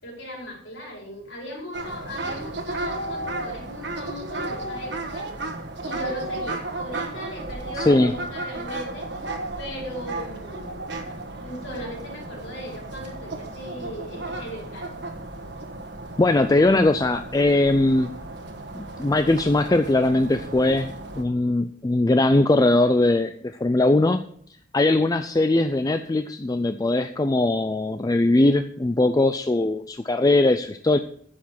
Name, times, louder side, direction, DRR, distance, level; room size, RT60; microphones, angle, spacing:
voice 1, 0.0-5.4 5.8-9.1 9.6-10.8 11.4-15.3, equal, 70° left, -2 dB, 4.8 m, -38 dB
sound 1, 1.7-21.2, right 2 dB, 55° right, 1.4 m, -34 dB
voice 2, 7.7-8.1 16.2-18.2 18.7-24.2 24.7-31.0, left 2 dB, 20° left, 9 dB, 0.3 m, -20 dB
10.0 x 7.3 x 6.0 m, 0.62 s
head